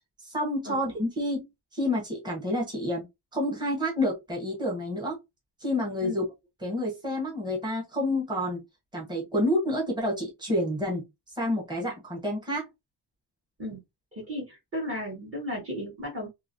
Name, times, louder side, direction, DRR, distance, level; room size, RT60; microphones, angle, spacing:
voice 1, 0.2-3.1 3.3-5.2 5.6-6.2 6.6-8.6 8.9-11.0 11.3-12.7, left 1 dB, 10° right, 1.1 m, -29 dB
voice 2, 14.1-16.3, left 1 dB, 35° right, 1.5 m, -34 dB
3.0 x 2.9 x 2.6 m
wide cardioid pair, 165°, 41 cm